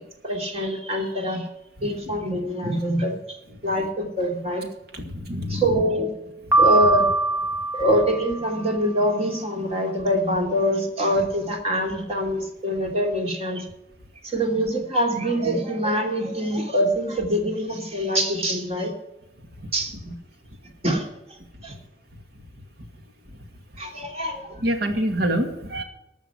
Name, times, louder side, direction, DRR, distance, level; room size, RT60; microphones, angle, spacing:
voice 1, 0.2-1.5 1.8-3.2 3.6-4.6 5.5-6.1 6.6-7.0 7.7-13.6 14.2-18.9 19.7-20.1 20.8-21.1 21.6-21.7 23.8-24.5, equal, 35° right, 2 dB, 2.8 m, -24 dB
voice 2, 4.9-5.6 24.6-25.8, right 1 dB, 60° right, 4 dB, 2.2 m, -26 dB
Piano, 6.5-8.7, right 2 dB, 10° right, 1.6 m, -22 dB
13.0 x 6.7 x 9.7 m, 0.91 s
head